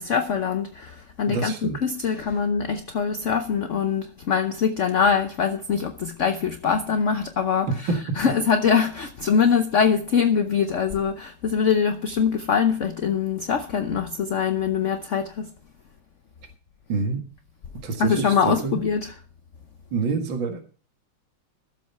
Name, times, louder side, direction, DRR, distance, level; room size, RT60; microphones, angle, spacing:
voice 1, 0.0-7.9 8.2-15.5 18.0-19.1, left 6 dB, 60° left, 0.7 m, -23 dB
voice 2, 1.3-1.8 7.7-8.0 16.9-17.2 17.8-18.8 19.9-20.7, right 4 dB, 65° right, 2.5 m, -27 dB
14.0 x 7.7 x 5.6 m
omnidirectional pair, 2.3 m